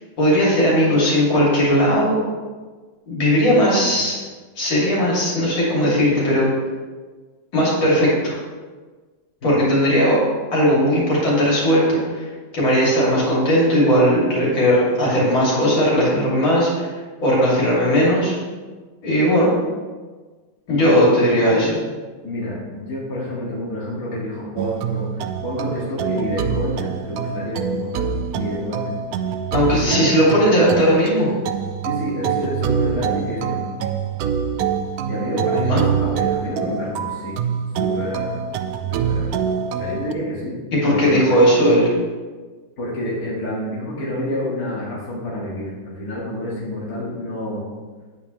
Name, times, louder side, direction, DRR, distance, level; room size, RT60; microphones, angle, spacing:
voice 1, 0.2-2.2 3.1-4.2 4.6-6.5 7.5-8.3 9.4-10.2 10.5-12.2 12.5-16.9 17.2-18.4 19.0-19.5 20.7-21.7 29.5-31.3 35.5-35.8 40.8-41.9, equal, 75° left, -6 dB, 3.5 m, -17 dB
voice 2, 20.7-21.7 22.2-28.9 29.5-30.1 31.8-33.6 35.1-37.3 37.7-38.4 38.9-39.3 39.7-40.6 40.8-41.2 42.8-47.7, left 1 dB, 45° left, -7 dB, 2.4 m, -28 dB
sound 1, 24.6-40.1, right 7 dB, 85° right, 0.8 m, -25 dB
9.0 x 8.8 x 3.2 m, 1.4 s
omnidirectional pair, 2.2 m